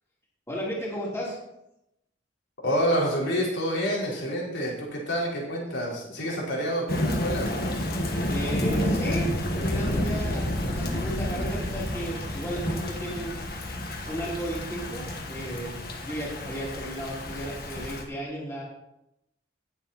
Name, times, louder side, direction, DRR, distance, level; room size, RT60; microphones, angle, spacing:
voice 1, 0.5-1.4 8.3-13.4 14.1-18.6, right 1 dB, 15° left, -5 dB, 3.7 m, -34 dB
voice 2, 2.6-7.5, equal, 85° left, -4 dB, 4.8 m, -28 dB
Thunder / Rain, 6.9-18.0, left 1 dB, 55° left, 2.1 m, -30 dB
19.5 x 7.5 x 4.4 m, 0.86 s
head